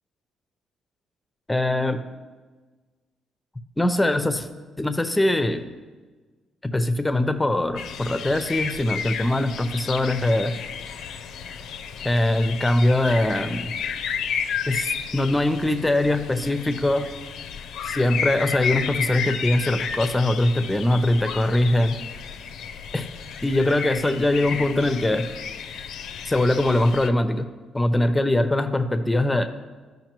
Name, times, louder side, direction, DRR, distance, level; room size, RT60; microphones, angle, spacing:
voice 1, 1.5-2.0 3.8-4.5 4.8-5.7 6.6-10.5 12.0-13.7 14.7-17.1 17.8-22.0 22.9-23.1 23.4-25.3 26.3-27.5 27.7-29.5, left 1 dB, 10° left, 9 dB, 0.6 m, -22 dB
sound 1, 7.8-27.1, left 7 dB, 80° left, 0.5 m, -32 dB
14.0 x 5.3 x 3.0 m, 1.4 s
cardioid pair, 90°, 0 cm